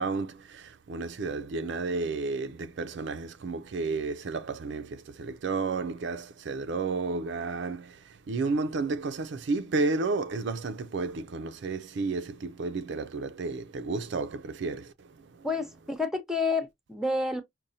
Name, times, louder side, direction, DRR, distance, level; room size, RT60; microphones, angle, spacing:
voice 1, 0.0-15.5, right 3 dB, 70° right, 0.4 m, -32 dB
voice 2, 15.4-17.4, left 3 dB, 5° right, 0.7 m, -29 dB
5.3 x 2.2 x 2.6 m
head